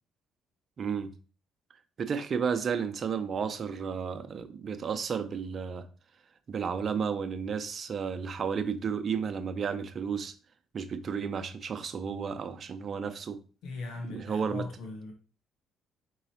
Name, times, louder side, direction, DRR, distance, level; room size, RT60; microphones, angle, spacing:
voice 1, 0.8-1.1 2.0-5.9 6.5-10.3 10.7-13.4 14.1-14.7, right 6 dB, 50° right, 0.6 m, -32 dB
voice 2, 13.6-15.1, left 3 dB, 75° left, 1.0 m, -39 dB
4.7 x 4.0 x 2.7 m
supercardioid pair, 65°, 0 cm